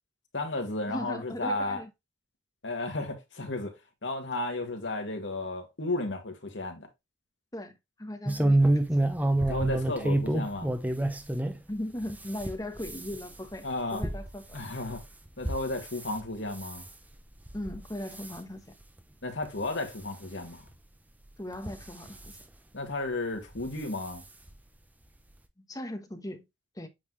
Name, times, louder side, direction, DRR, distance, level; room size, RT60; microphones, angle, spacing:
voice 1, 0.3-1.8 2.6-6.9 9.5-10.7 13.6-14.0 14.5-15.0 15.4-16.9 19.2-20.6 22.7-24.2, left 2 dB, 80° left, 1.9 m, -33 dB
voice 2, 0.9-1.9 7.5-8.7 11.7-14.6 17.5-18.7 21.4-22.4 25.7-26.4 26.7-26.9, left 1 dB, 20° left, 1.1 m, -38 dB
sound 1, 8.3-11.6 12.0-16.2 16.5-16.9 17.5-17.8 18.1-18.4 19.0-19.1 19.4-19.5 20.7-20.8 21.5-22.4 23.5-23.7 24.0-24.1 24.5-24.6, right 1 dB, 10° right, 0.8 m, -28 dB
8.6 x 4.1 x 3.1 m
head